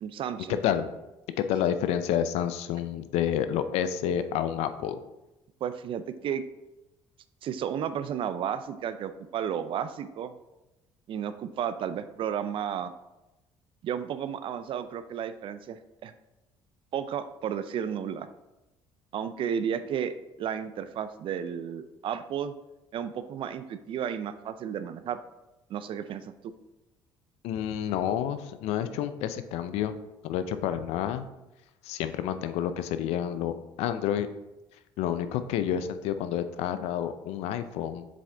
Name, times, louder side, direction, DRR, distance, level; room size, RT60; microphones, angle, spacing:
voice 1, 0.0-0.6 5.6-6.4 7.4-10.3 11.1-12.9 13.8-16.1 16.9-18.3 19.1-22.5 22.9-25.2 25.7-26.5, right 8 dB, 55° right, 11 dB, 0.4 m, -33 dB
voice 2, 1.5-5.0 27.4-30.0 30.2-31.2 31.8-33.5 33.8-34.3 35.0-38.1, left 10 dB, 75° left, 11 dB, 0.5 m, -29 dB
7.5 x 3.7 x 3.4 m, 0.97 s
supercardioid pair, 80°, 11 cm